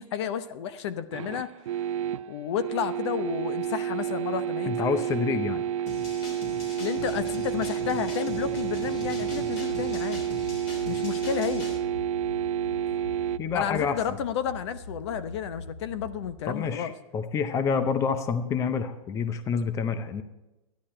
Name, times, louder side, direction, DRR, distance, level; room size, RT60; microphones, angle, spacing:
voice 1, 0.0-1.9 2.3-5.0 5.3-5.4 6.8-10.3 10.9-11.7 13.5-16.9, left 8 dB, 55° left, 13 dB, 0.8 m, -32 dB
sound 1, 1.1-13.4, right 9 dB, 75° right, 0.4 m, -30 dB
voice 2, 4.7-5.6 13.4-14.2 16.5-20.2, left 6 dB, 20° left, 10 dB, 0.6 m, -28 dB
sound 2, 5.9-11.8, left 3 dB, 40° left, 3.5 m, -41 dB
sound 3, 8.3-16.3, equal, 15° right, 1.1 m, -44 dB
12.5 x 10.5 x 4.4 m, 0.99 s
hypercardioid pair, 145°, 17 cm